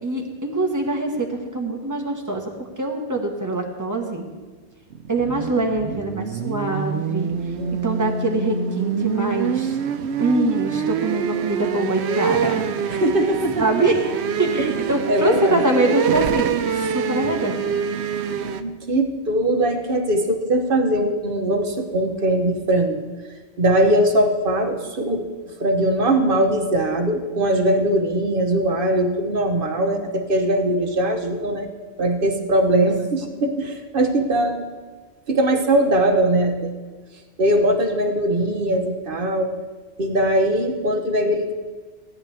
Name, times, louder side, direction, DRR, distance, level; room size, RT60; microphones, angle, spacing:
voice 1, 0.0-2.4 2.8-4.3 5.1-7.3 7.8-9.8 10.2-13.0 13.6-17.6 33.2-33.3, right 2 dB, 15° right, 1 dB, 1.3 m, -24 dB
sound 1, 4.9-18.6, right 6 dB, 75° right, 0.9 m, -25 dB
voice 2, 7.3-7.9 12.9-13.7 14.6-15.6 18.4-23.0 23.6-25.3 25.6-31.7 32.0-34.7 35.3-36.7 37.4-39.5 40.0-41.5, right 1 dB, 50° right, 4 dB, 1.2 m, -21 dB
16.5 x 9.8 x 3.4 m, 1.4 s
omnidirectional pair, 1.2 m